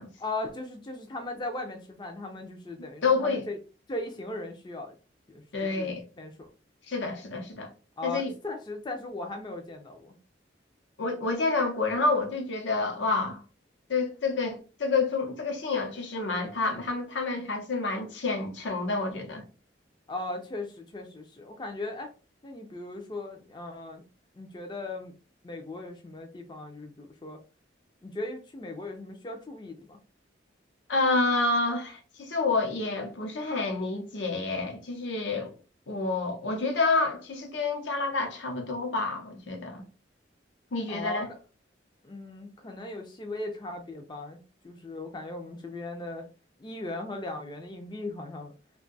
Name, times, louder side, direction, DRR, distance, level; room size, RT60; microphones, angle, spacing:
voice 1, 0.2-3.6 3.9-4.9 5.3-5.9 6.2-6.5 8.0-10.2 20.1-22.1 22.4-24.0 24.3-25.1 25.4-27.4 28.0-30.0 40.9-41.2 42.0-46.2 46.6-48.5, left 2 dB, 25° left, 0.4 m, -38 dB
voice 2, 3.0-3.5 5.5-6.0 6.9-7.7 8.0-8.3 11.0-13.4 13.9-19.4 30.9-35.5 35.9-39.8 40.7-41.3, left 3 dB, 80° left, 0.8 m, -28 dB
2.6 x 2.3 x 3.9 m
head